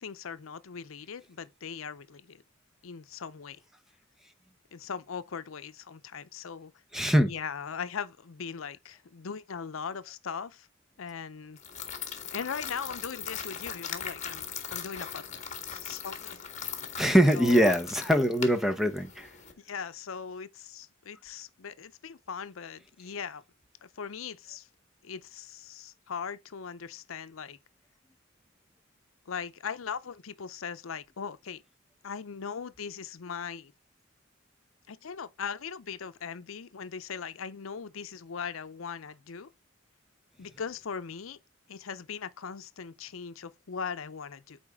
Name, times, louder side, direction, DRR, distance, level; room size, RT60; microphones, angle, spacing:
voice 1, 0.0-2.4 2.8-3.6 4.7-6.7 7.3-10.7 11.0-11.6 12.3-16.9 17.3-17.8 19.6-23.4 23.8-24.7 25.0-27.6 29.3-31.6 32.0-33.7 34.9-39.5 40.4-41.4 41.7-44.6, left 6 dB, 85° left, 0.6 m, -39 dB
voice 2, 6.9-7.3 17.0-19.3, equal, ahead, 0.8 m, -23 dB
sound 1, 11.6-19.5, left 7 dB, 35° left, 1.5 m, -40 dB
8.9 x 4.2 x 3.6 m
head